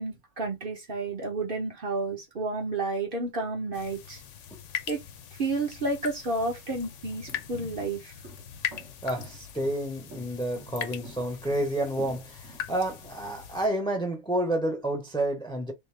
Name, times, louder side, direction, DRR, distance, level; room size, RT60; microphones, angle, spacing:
voice 1, 0.0-4.2 4.9-5.0 5.4-8.1, right 3 dB, 50° right, 1.2 m, -31 dB
sound 1, 3.7-13.7, left 9 dB, 80° left, 1.0 m, -40 dB
sound 2, 6.6-13.1, right 2 dB, 75° right, 1.8 m, -47 dB
voice 2, 9.0-15.7, right 1 dB, 5° left, 0.9 m, -30 dB
3.6 x 2.6 x 3.2 m
omnidirectional pair, 1.3 m